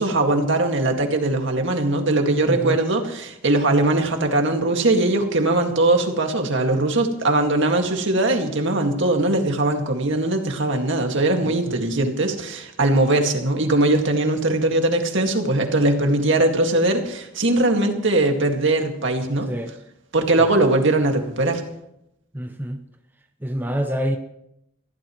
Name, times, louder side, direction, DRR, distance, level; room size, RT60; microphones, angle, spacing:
voice 1, 0.0-19.5 20.1-21.6, right 2 dB, 65° right, 2.0 m, -20 dB
voice 2, 2.4-2.8 11.4-11.8 19.5-19.7 22.3-22.8 23.4-24.2, equal, 10° right, 0.8 m, -27 dB
22.5 x 15.5 x 3.1 m
head